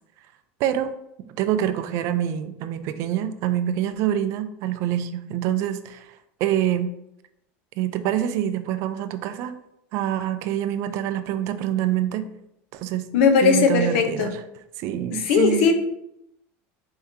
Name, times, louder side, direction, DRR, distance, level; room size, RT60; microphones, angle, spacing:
voice 1, 0.6-6.9 7.8-9.5 9.9-12.3 12.7-13.1 13.4-14.4 14.8-15.7, right 11 dB, 50° right, 11 dB, 0.3 m, -26 dB
voice 2, 13.1-14.3 15.1-15.7, left 6 dB, 75° left, 5 dB, 0.7 m, -18 dB
4.5 x 3.5 x 2.7 m, 0.81 s
cardioid pair, 150°, 6 cm